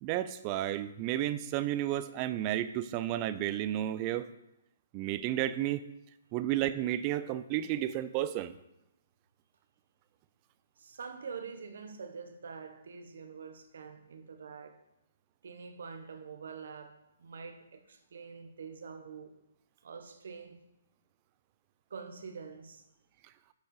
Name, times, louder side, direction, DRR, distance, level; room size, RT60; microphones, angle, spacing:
voice 1, 0.0-4.3 4.9-5.8 6.3-8.5, right 13 dB, 30° right, 0.5 m, -32 dB
voice 2, 10.8-14.8 15.4-19.4 19.8-20.7 21.9-22.9, right 5 dB, 75° right, 1.3 m, -45 dB
8.2 x 6.3 x 6.6 m
hypercardioid pair, 155°, 0 cm